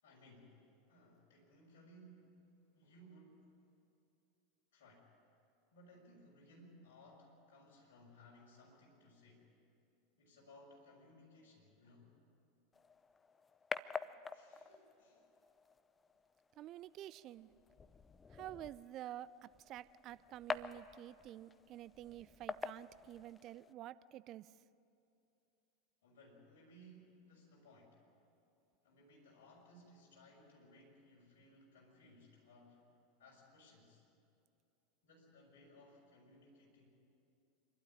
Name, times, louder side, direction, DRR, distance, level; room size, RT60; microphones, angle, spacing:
voice 1, 0.0-2.4 2.7-3.6 4.7-5.1 5.7-9.5 10.2-12.2 14.0-15.3 26.0-28.1 28.8-32.9 33.2-34.0 35.0-36.9, equal, 60° left, -3 dB, 6.3 m, -62 dB
sound 1, 12.7-23.7, left 5 dB, 20° left, 0.6 m, -48 dB
voice 2, 16.6-17.5 18.3-24.5, right 13 dB, 40° right, 17 dB, 0.5 m, -50 dB
26.5 x 12.5 x 10.0 m, 2.6 s
figure-of-eight pair, 80°, 0 cm